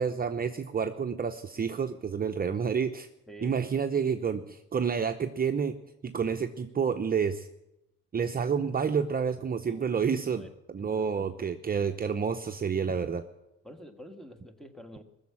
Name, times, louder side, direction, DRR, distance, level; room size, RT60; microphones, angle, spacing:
voice 1, 0.0-3.1 3.4-5.8 6.0-7.5 8.1-13.3, right 6 dB, 30° right, 6 dB, 0.7 m, -29 dB
voice 2, 3.3-3.6 9.7-9.9 10.2-12.0 13.6-15.0, equal, ahead, 7 dB, 1.6 m, -49 dB
20.0 x 7.1 x 8.6 m, 0.90 s
cardioid pair, 90°, 30 cm